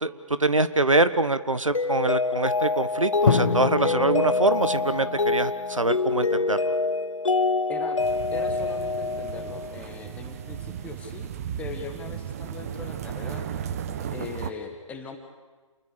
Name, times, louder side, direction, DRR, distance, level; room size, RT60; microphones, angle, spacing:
voice 1, 0.0-6.7, right 2 dB, 80° right, 13 dB, 1.4 m, -24 dB
Mallet percussion, 1.7-9.9, left 3 dB, 75° left, 0.8 m, -26 dB
Drum, 3.3-7.0, left 6 dB, 45° left, 1.9 m, -29 dB
sound 1, 8.0-14.5, right 9 dB, 30° right, 1.2 m, -35 dB
voice 2, 8.3-11.3 11.6-13.5 14.0-15.2, left 5 dB, 10° left, 5 dB, 1.8 m, -39 dB
28.5 x 21.5 x 6.8 m, 1.3 s
figure-of-eight pair, 140°, 17 cm